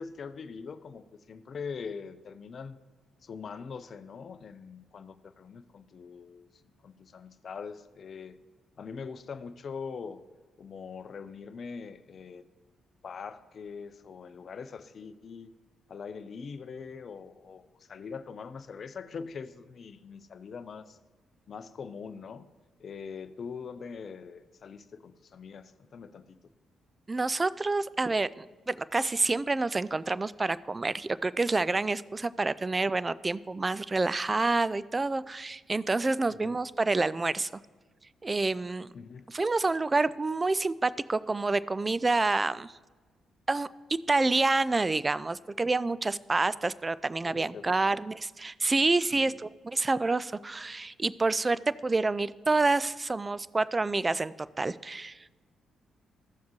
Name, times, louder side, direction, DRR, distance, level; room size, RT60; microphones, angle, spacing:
voice 1, 0.0-2.8 3.2-6.5 6.8-8.4 8.8-10.2 10.6-12.4 13.0-15.5 15.9-21.0 21.5-22.5 22.8-26.4 36.3-36.6 38.9-39.3 47.2-47.8 49.1-49.4, left 5 dB, 55° left, 13 dB, 0.5 m, -42 dB
voice 2, 27.1-37.5 38.2-38.9 39.3-42.7 43.5-43.7 44.1-55.2, right 3 dB, 30° right, 18 dB, 0.3 m, -28 dB
14.0 x 7.2 x 3.0 m, 1.3 s
hypercardioid pair, 45°, 0 cm